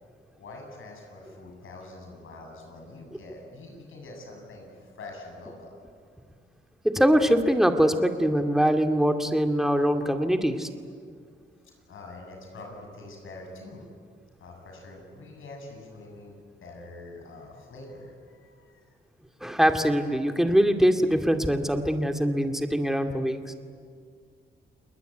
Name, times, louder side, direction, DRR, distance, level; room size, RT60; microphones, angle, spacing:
voice 1, 0.4-5.8 11.6-13.9 14.4-18.8, left 2 dB, 75° left, 2 dB, 8.0 m, -45 dB
voice 2, 6.8-10.7 19.4-23.5, equal, ahead, 5 dB, 2.3 m, -23 dB
30.0 x 20.5 x 9.4 m, 2.1 s
cardioid pair, 75°, 21 cm